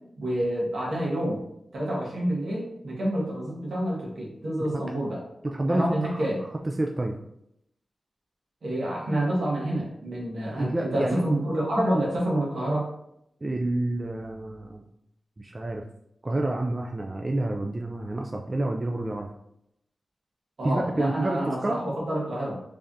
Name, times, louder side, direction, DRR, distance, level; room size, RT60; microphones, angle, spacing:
voice 1, 0.2-1.4 1.7-5.2 5.7-6.4 8.6-12.9 20.6-22.6, right 1 dB, 80° right, -4 dB, 1.3 m, -28 dB
voice 2, 5.4-6.3 6.6-7.2 10.6-11.2 13.4-14.8 15.4-15.8 16.2-19.3 20.6-21.8, right 1 dB, 30° right, 2 dB, 0.3 m, -28 dB
3.5 x 3.3 x 2.7 m, 0.78 s
wide cardioid pair, 70°, 0 cm